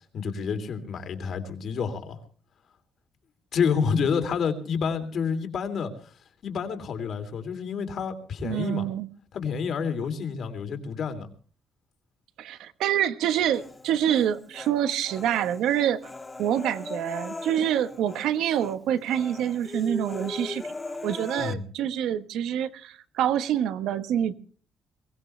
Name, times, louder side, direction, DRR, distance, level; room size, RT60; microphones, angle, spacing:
voice 1, 0.1-2.2 3.5-5.9 6.4-8.9 9.3-11.3 21.4-21.6, left 6 dB, 65° left, 3.1 m, -29 dB
voice 2, 8.4-9.1 12.4-16.0 16.4-20.6 21.0-24.4, right 10 dB, 85° right, 1.2 m, -26 dB
Human voice, 13.5-14.7 15.1-18.3 18.5-18.8 19.1-21.5, left 3 dB, 20° left, 1.6 m, -39 dB
22.5 x 17.0 x 3.3 m
cardioid pair, 90°, 0 cm